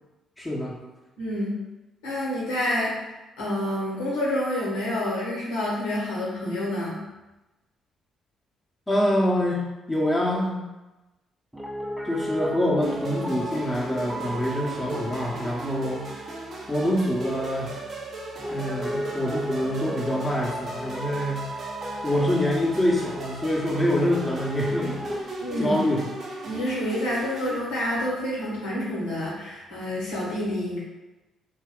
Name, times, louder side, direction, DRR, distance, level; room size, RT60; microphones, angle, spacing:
voice 1, 0.4-0.8 8.9-10.6 12.0-16.3 16.7-17.8 18.5-21.6 22.0-25.2 25.6-26.1, left 1 dB, 15° left, -4 dB, 0.9 m, -25 dB
voice 2, 1.2-1.6 2.0-2.9 3.4-7.0 25.4-25.8 26.4-30.8, left 1 dB, 80° left, -6 dB, 1.0 m, -28 dB
Piano, 11.5-25.2, equal, 5° right, 0.5 m, -36 dB
sound 1, 12.8-27.6, right 2 dB, 55° right, 0.6 m, -38 dB
2.8 x 2.3 x 3.6 m, 1.0 s
hypercardioid pair, 45°, 0 cm